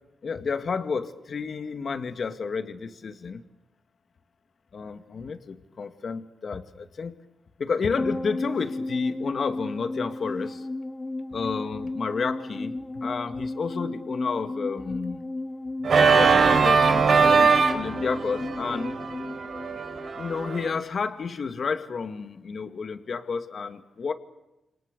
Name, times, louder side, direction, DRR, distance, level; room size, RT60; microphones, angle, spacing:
voice 1, 0.2-3.4 4.7-7.2 7.6-10.7 11.3-15.3 16.1-18.9 20.2-24.1, left 5 dB, 50° left, 7 dB, 2.2 m, -31 dB
sound 1, 8.0-20.5 20.7-20.8, left 2 dB, 20° left, 1.6 m, -34 dB
Organ, 15.8-20.7, right 5 dB, 55° right, 3.7 m, -21 dB
29.0 x 28.5 x 7.0 m, 0.95 s
wide cardioid pair, 125°, 0 cm